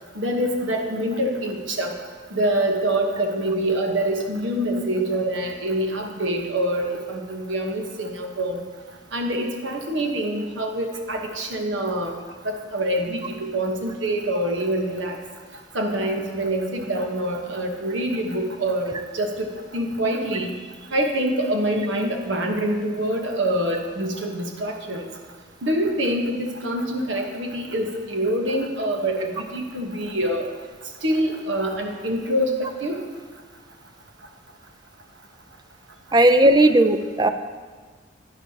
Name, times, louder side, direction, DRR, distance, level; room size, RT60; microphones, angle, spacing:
voice 1, 0.1-1.9 2.3-8.6 9.1-12.1 12.7-15.2 15.7-20.5 20.9-25.1 25.6-30.5 31.0-33.0, right 1 dB, 75° right, 2 dB, 1.2 m, -25 dB
voice 2, 36.1-37.3, right 1 dB, 20° right, 9 dB, 0.4 m, -16 dB
11.0 x 9.9 x 2.9 m, 1.5 s
head